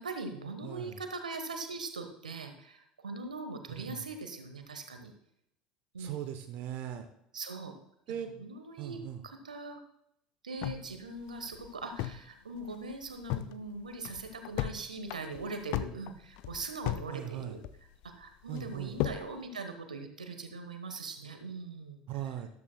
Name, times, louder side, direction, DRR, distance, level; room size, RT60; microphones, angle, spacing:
voice 1, 0.0-5.1 5.9-6.2 7.3-7.7 8.4-9.8 10.4-17.6 18.0-22.0, right 3 dB, 80° right, 7 dB, 1.2 m, -41 dB
voice 2, 0.6-1.0 3.7-4.1 6.0-7.1 8.1-8.3 8.8-9.2 17.1-17.6 18.5-19.0 22.1-22.5, right 10 dB, 50° right, 8 dB, 0.8 m, -39 dB
sound 1, 10.6-12.3 12.6-12.7 13.0-13.5 13.9-14.8 15.1-17.1 17.4-18.1 18.6-19.3, left 14 dB, 55° left, 0.5 m, -35 dB
13.5 x 12.0 x 2.2 m, 0.77 s
figure-of-eight pair, 70°, 4 cm